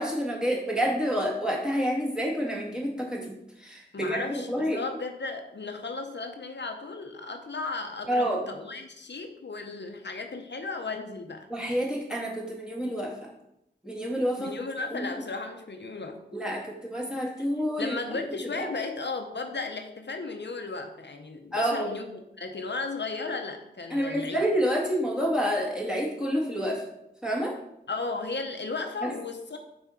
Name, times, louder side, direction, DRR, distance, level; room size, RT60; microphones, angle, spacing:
voice 1, 0.0-3.3 3.6-4.8 8.1-8.4 11.5-13.3 13.8-14.5 14.9-15.1 16.3-17.9 18.6-18.7 21.5-21.9 23.9-26.8 27.2-27.6 29.0-29.1, equal, 5° right, -3 dB, 2.0 m, -28 dB
voice 2, 3.9-11.5 14.4-16.2 17.8-22.1 22.4-24.4 27.9-29.6, left 3 dB, 75° left, 5 dB, 0.7 m, -35 dB
5.9 x 4.3 x 5.7 m, 0.82 s
wide cardioid pair, 55°, 18 cm